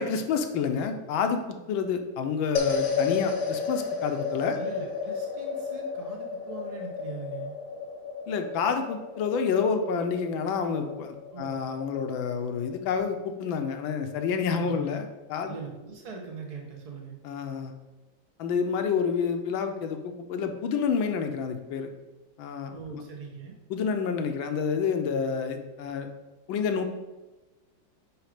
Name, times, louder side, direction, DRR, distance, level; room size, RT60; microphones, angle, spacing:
voice 1, 0.0-4.6 8.3-15.6 17.2-17.7 18.4-21.9 22.4-23.0 23.7-26.1 26.5-26.9, left 6 dB, 85° left, 6 dB, 1.5 m, -29 dB
sound 1, 2.5-13.0, left 5 dB, 50° left, 1.0 m, -33 dB
voice 2, 4.5-7.6 11.3-11.6 14.5-14.9 15.5-17.2 22.7-23.6, right 5 dB, 40° right, 0 dB, 0.5 m, -41 dB
6.3 x 5.0 x 4.9 m, 1.1 s
omnidirectional pair, 2.1 m